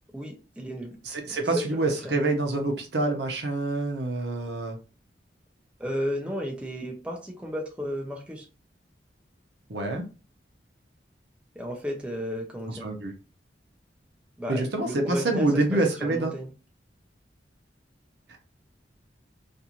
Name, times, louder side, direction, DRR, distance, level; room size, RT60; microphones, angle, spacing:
voice 1, 0.1-1.0 1.5-2.2 5.8-8.5 11.6-12.9 14.4-16.5, equal, 5° right, 0 dB, 0.5 m, -33 dB
voice 2, 1.0-4.8 9.7-10.0 12.7-13.1 14.5-16.3, right 2 dB, 70° right, 3 dB, 0.7 m, -26 dB
2.6 x 2.4 x 2.9 m, 0.33 s
head